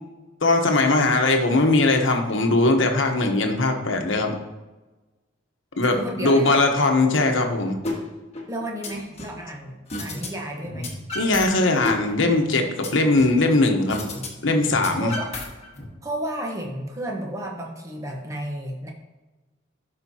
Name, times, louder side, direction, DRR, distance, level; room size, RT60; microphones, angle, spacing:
voice 1, 0.4-4.4 5.8-7.8 11.1-14.0 14.4-15.1, left 2 dB, 75° left, 4 dB, 1.0 m, -20 dB
voice 2, 5.8-6.6 8.5-10.9 14.9-15.3 16.0-18.9, right 1 dB, 15° right, 0 dB, 1.1 m, -32 dB
sound 1, 7.8-8.0 8.3-9.4 9.9-10.3 10.6-11.4 11.8-13.4 13.9-14.3 14.6-15.8, left 2 dB, 30° left, 1.4 m, -32 dB
12.0 x 4.9 x 2.8 m, 1.2 s
head